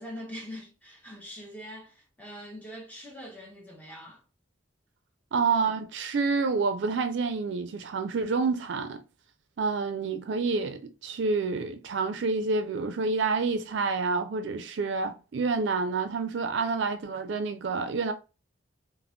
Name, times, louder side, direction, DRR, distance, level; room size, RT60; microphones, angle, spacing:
voice 1, 0.0-4.2, equal, 10° left, 0.5 m, -43 dB
voice 2, 5.3-9.0 9.6-18.1, right 4 dB, 65° right, 0.4 m, -28 dB
2.2 x 2.0 x 3.6 m
head